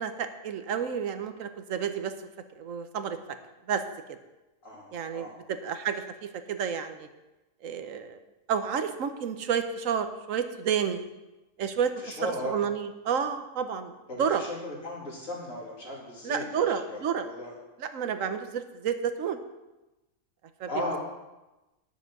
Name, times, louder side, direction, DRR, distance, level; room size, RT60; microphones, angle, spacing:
voice 1, 0.0-2.1 2.6-3.2 3.7-3.8 4.9-7.1 7.6-8.2 8.5-11.0 11.6-13.9 14.2-14.4 16.2-17.3 17.8-19.4 20.6-20.7, right 7 dB, 75° right, 9 dB, 1.2 m, -30 dB
voice 2, 4.6-5.3 12.0-12.6 14.1-17.5 20.7-21.0, left 1 dB, 70° left, -4 dB, 3.2 m, -36 dB
10.5 x 7.2 x 5.9 m, 1.0 s
omnidirectional pair, 1.4 m